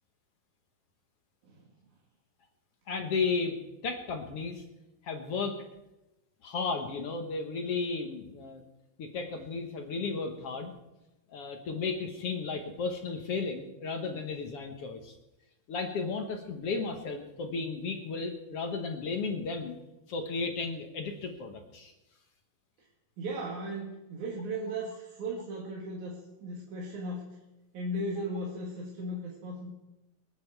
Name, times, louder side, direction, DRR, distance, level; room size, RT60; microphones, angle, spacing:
voice 1, 2.9-4.6 5.0-5.6 6.4-8.6 9.0-10.7 11.3-15.2 15.7-19.7 20.1-21.9, left 4 dB, 60° left, 4 dB, 1.7 m, -34 dB
voice 2, 23.2-27.2 27.7-29.7, right 1 dB, 60° right, -2 dB, 3.0 m, -36 dB
26.0 x 9.6 x 4.6 m, 0.97 s
omnidirectional pair, 4.2 m